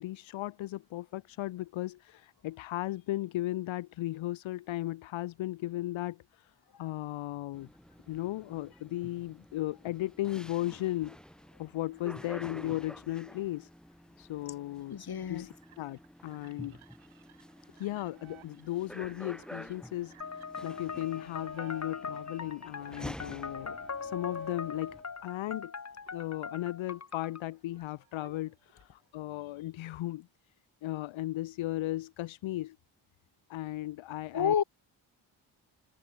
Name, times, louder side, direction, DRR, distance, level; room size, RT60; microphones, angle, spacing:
voice 1, 0.0-6.5 6.8-7.7 8.1-11.2 11.6-13.7 14.2-15.0 15.3-16.8 17.8-25.7 26.1-30.3 30.8-32.8 33.5-34.5, left 16 dB, 75° left, 0.7 m, -36 dB
sound 1, 7.5-25.0, equal, ahead, 5.5 m, -50 dB
sound 2, 14.8-21.9 22.4-25.3 25.6-29.2, right 14 dB, 90° right, 2.9 m, -60 dB
voice 2, 14.9-15.5 34.3-34.6, left 8 dB, 50° left, 1.6 m, -29 dB
sound 3, 20.2-27.4, left 5 dB, 35° left, 1.7 m, -41 dB
supercardioid pair, 45°, 48 cm